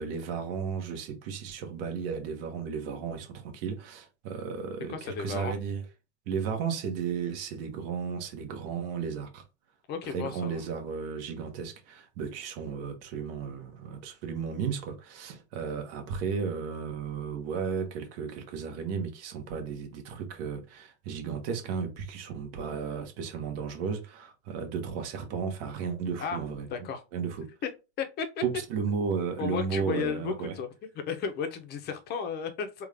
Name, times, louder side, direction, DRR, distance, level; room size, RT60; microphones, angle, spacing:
voice 1, 0.0-5.8 6.3-9.4 10.1-26.7 27.1-27.5 28.4-30.5, right 6 dB, 55° right, 1.3 m, -34 dB
voice 2, 4.9-5.5 9.9-10.7 26.2-26.4 26.7-27.0 27.6-27.7 28.0-28.4 29.4-30.7 31.1-32.9, left 6 dB, 30° left, 0.7 m, -33 dB
3.7 x 2.5 x 3.4 m
supercardioid pair, 135°, 35 cm